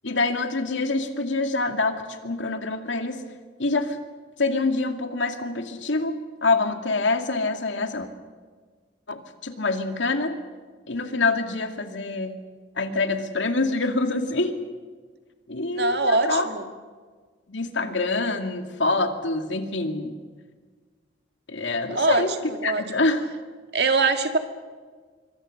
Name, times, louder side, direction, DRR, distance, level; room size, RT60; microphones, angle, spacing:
voice 1, 0.0-3.2 3.6-4.0 4.4-8.1 9.1-10.4 10.9-12.3 12.8-14.5 15.5-16.5 17.5-20.1 21.5-22.3 22.6-23.3, left 3 dB, 80° left, 6 dB, 2.4 m, -26 dB
voice 2, 15.7-16.7 21.9-22.2 22.5-22.8 23.7-24.4, right 3 dB, 60° right, 7 dB, 2.2 m, -23 dB
25.5 x 24.5 x 6.6 m, 1.5 s
head